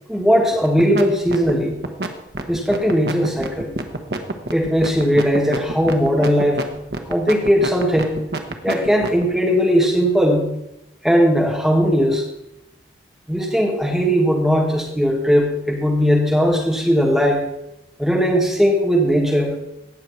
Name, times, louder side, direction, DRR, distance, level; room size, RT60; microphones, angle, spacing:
voice 1, 0.1-1.8 2.5-3.7 4.5-6.7 7.1-8.2 8.6-10.5 11.0-12.2 13.3-17.5 18.0-19.6, equal, ahead, -1 dB, 2.1 m, -18 dB
sound 1, 0.6-1.0 1.3-9.2, right 2 dB, 65° right, 1.1 m, -26 dB
17.5 x 6.4 x 4.4 m, 0.86 s
head